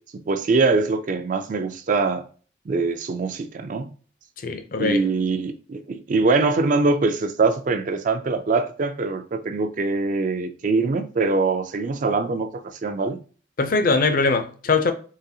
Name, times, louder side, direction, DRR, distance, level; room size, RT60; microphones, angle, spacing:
voice 1, 0.1-2.2 2.7-3.9 4.8-12.5 12.8-13.2, right 3 dB, 45° right, 0.4 m, -23 dB
voice 2, 4.4-5.0 13.6-14.9, left 3 dB, 50° left, 0.5 m, -21 dB
3.9 x 2.3 x 2.7 m
head